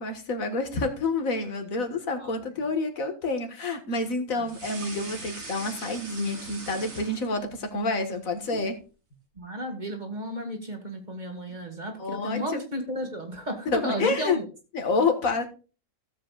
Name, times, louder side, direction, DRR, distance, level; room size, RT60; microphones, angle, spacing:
voice 1, 0.0-8.8 12.0-12.6 13.7-14.4 14.7-15.5, left 3 dB, 70° left, 6 dB, 1.9 m, -28 dB
sound 1, 4.4-7.7 8.0-8.7, right 3 dB, 70° right, 2.5 m, -41 dB
voice 2, 9.4-14.5, equal, 30° right, 4 dB, 2.0 m, -33 dB
16.5 x 7.6 x 2.4 m, 0.34 s
omnidirectional pair, 1.5 m